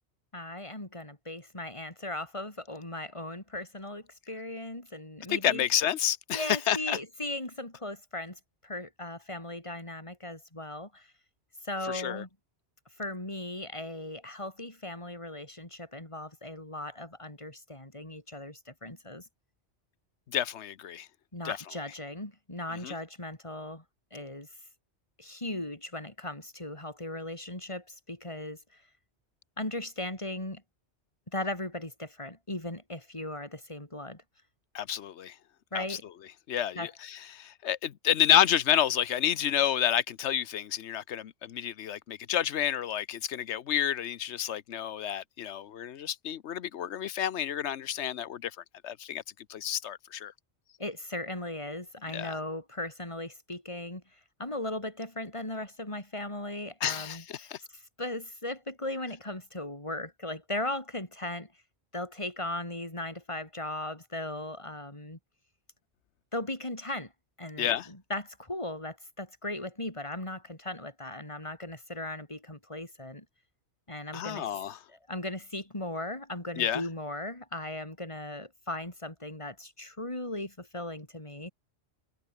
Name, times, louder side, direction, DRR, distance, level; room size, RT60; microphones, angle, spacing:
voice 1, 0.3-5.7 6.3-11.1 11.6-12.3 13.0-19.3 21.3-23.8 24.1-24.5 25.2-28.8 29.6-30.6 31.3-34.2 35.7-36.0 36.7-36.9 50.8-54.0 54.4-61.5 61.9-65.2 66.3-67.1 67.4-73.2 73.9-74.5 74.9-81.5, left 1 dB, 25° left, 4.6 m, -38 dB
voice 2, 5.3-7.0 11.9-12.2 20.3-21.1 21.4-21.6 22.8-22.9 34.7-35.3 35.7-36.0 36.5-48.5 48.8-49.2 49.5-50.3 52.1-52.4 56.8-57.6 67.6-67.9 74.1-74.8 76.6-76.8, left 10 dB, 85° left, 1.1 m, -29 dB
omnidirectional pair, 1.1 m